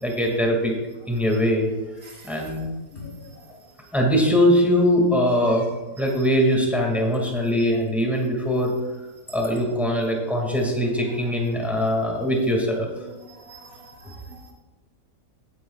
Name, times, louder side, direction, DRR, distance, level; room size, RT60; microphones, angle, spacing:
voice 1, 0.0-0.7 1.1-1.7 2.2-2.7 3.9-5.7 6.0-8.7 9.3-12.9, equal, ahead, 0 dB, 1.9 m, -21 dB
voice 2, 2.9-3.3 13.3-14.4, left 1 dB, 40° left, 0 dB, 1.7 m, -43 dB
17.0 x 9.7 x 2.4 m, 1.2 s
omnidirectional pair, 1.8 m